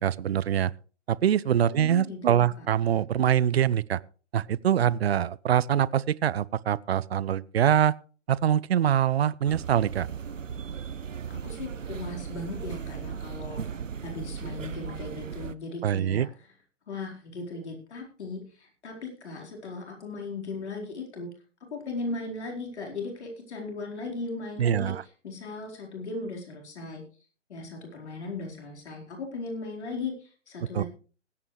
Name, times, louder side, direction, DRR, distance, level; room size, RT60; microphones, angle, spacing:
voice 1, 0.0-0.7 1.1-4.0 4.3-7.9 8.3-10.1 15.8-16.3 24.6-25.0 30.7-30.8, right 9 dB, 55° right, 0.6 m, -24 dB
voice 2, 1.7-2.7 11.3-13.6 14.0-16.5 16.9-21.3 21.7-24.9 25.2-27.0 27.5-30.9, left 3 dB, 60° left, 4.5 m, -37 dB
sound 1, 9.4-15.5, right 7 dB, 85° right, 0.8 m, -37 dB
20.5 x 8.9 x 3.2 m
figure-of-eight pair, 135°, 37 cm